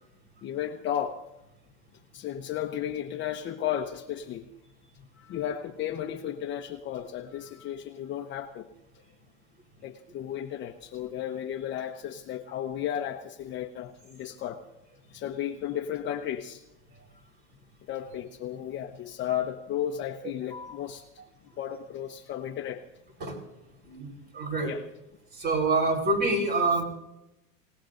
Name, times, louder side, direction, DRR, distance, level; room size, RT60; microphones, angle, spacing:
voice 1, 0.4-1.2 2.1-4.4 5.2-8.7 9.8-14.6 15.1-16.6 17.9-21.0 21.6-22.8 24.7-24.8, left 10 dB, 30° left, 4 dB, 1.0 m, -34 dB
voice 2, 23.8-24.7 25.3-26.8, right 3 dB, 25° right, 1 dB, 4.2 m, -27 dB
27.5 x 18.0 x 2.6 m, 0.91 s
supercardioid pair, 145°, 40 cm